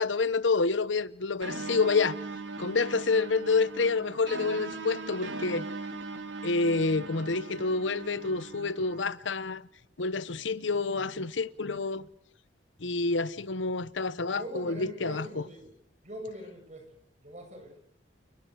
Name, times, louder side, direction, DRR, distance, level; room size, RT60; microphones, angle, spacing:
voice 1, 0.0-2.2 2.6-5.7 6.4-9.6 10.0-12.1 12.8-15.4, left 4 dB, 90° left, 1.0 m, -28 dB
sound 1, 1.4-9.0, right 3 dB, 80° right, 2.9 m, -39 dB
voice 2, 14.2-15.7 16.0-16.9 17.2-17.8, equal, 40° right, 7.5 m, -42 dB
29.5 x 20.0 x 8.1 m
head